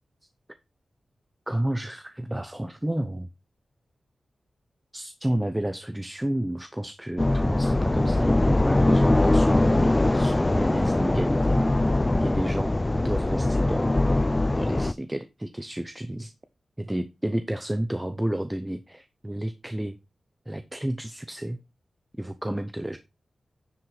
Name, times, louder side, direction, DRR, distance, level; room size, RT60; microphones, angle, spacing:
voice 1, 1.5-3.3 4.9-11.7 12.2-14.0 14.6-16.3 16.8-20.0 20.5-21.6 22.2-23.0, right 1 dB, 10° right, 0.7 m, -31 dB
sound 1, 7.2-14.9, left 2 dB, 20° left, 0.4 m, -22 dB
9.9 x 4.6 x 4.9 m
wide cardioid pair, 85°, 0 cm